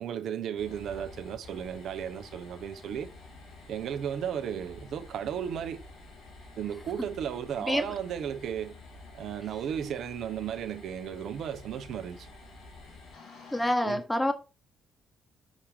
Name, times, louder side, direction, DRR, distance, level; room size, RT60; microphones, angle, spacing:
voice 1, 0.0-3.1 3.7-5.8 6.6-8.8 9.1-12.3 13.8-14.0, right 8 dB, 60° right, 0.7 m, -34 dB
sound 1, 0.6-13.7, left 3 dB, 60° left, 3.0 m, -49 dB
voice 2, 13.5-14.3, left 1 dB, 10° left, 1.1 m, -27 dB
5.6 x 5.0 x 3.3 m
figure-of-eight pair, 45°, 0 cm